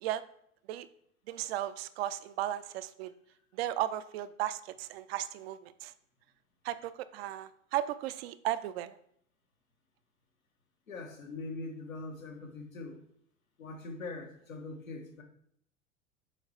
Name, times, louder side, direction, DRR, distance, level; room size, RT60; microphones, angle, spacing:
voice 1, 1.3-3.1 3.6-5.9 6.6-9.0, right 13 dB, 50° right, 13 dB, 0.5 m, -35 dB
voice 2, 10.9-13.0 13.6-15.2, left 3 dB, 80° left, 3 dB, 1.4 m, -42 dB
7.0 x 4.6 x 4.3 m, 0.70 s
figure-of-eight pair, 85°, 40 cm